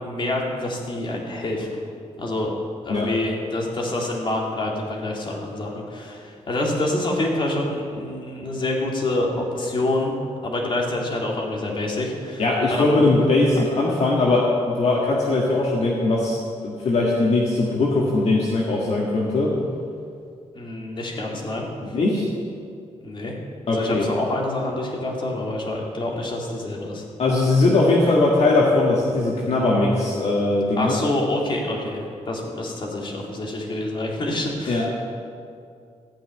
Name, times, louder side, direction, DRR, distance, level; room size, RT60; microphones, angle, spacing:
voice 1, 0.0-1.8 2.2-2.6 2.8-10.1 10.4-13.0 13.6-13.7 20.5-21.7 23.0-23.4 23.7-27.0 30.8-34.9, left 1 dB, 40° left, -2 dB, 2.4 m, -27 dB
voice 2, 12.4-16.4 16.6-19.5 21.9-22.3 23.7-24.1 27.2-31.0 34.7-35.0, left 2 dB, 60° left, -3 dB, 1.7 m, -20 dB
14.5 x 5.7 x 9.4 m, 2.4 s
wide cardioid pair, 125°, 12 cm